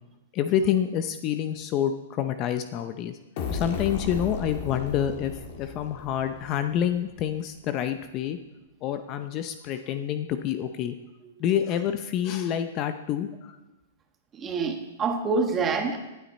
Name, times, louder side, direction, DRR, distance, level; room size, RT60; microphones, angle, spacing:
voice 1, 0.3-3.2 3.5-5.3 5.6-8.4 8.8-11.0 11.4-13.5, left 9 dB, 30° left, 9 dB, 0.6 m, -27 dB
sound 1, 3.4-7.0, left 4 dB, 45° left, 2.3 m, -35 dB
voice 2, 14.3-16.0, right 4 dB, 20° right, 4 dB, 1.4 m, -26 dB
18.0 x 9.2 x 4.2 m, 1.0 s
hypercardioid pair, 155°, 0 cm